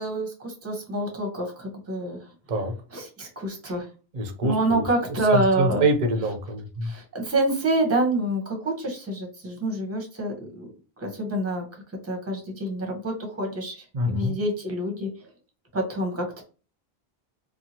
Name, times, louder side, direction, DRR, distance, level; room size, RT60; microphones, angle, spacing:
voice 1, 0.0-2.2 2.9-3.9 4.4-5.8 6.8-10.7 11.0-11.6 12.0-15.1 15.7-16.4, right 1 dB, 15° right, 1 dB, 0.7 m, -27 dB
voice 2, 4.1-4.8 5.3-6.9 13.9-14.4, right 1 dB, 50° right, 4 dB, 0.7 m, -25 dB
2.8 x 2.3 x 2.7 m, 0.35 s
omnidirectional pair, 1.0 m